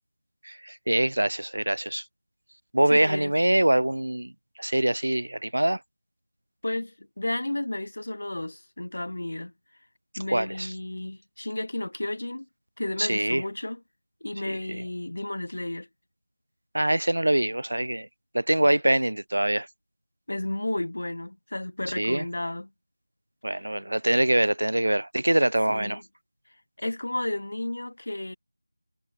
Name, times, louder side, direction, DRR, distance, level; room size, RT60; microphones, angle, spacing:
voice 1, 0.4-2.0 2.7-4.3 4.6-5.8 10.3-10.7 13.0-13.4 14.5-14.8 16.7-18.1 18.3-19.7 22.0-22.2 23.4-26.0, right 1 dB, 80° right, 0.5 m, -24 dB
voice 2, 2.9-3.3 6.6-9.5 10.2-12.5 12.8-13.8 14.2-15.9 20.3-22.7 23.5-23.6 25.7-26.0 26.8-28.4, left 1 dB, 50° left, 3.1 m, -32 dB
figure-of-eight pair, 180°, 0 cm